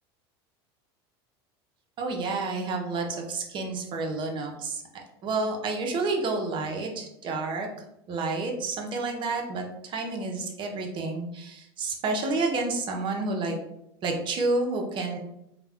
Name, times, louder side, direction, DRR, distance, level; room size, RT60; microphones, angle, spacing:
voice 1, 2.0-4.8 5.2-7.7 8.1-13.6 14.0-15.2, right 3 dB, 40° right, 2 dB, 0.6 m, -29 dB
2.3 x 2.1 x 3.4 m, 0.81 s
supercardioid pair, 115°, 13 cm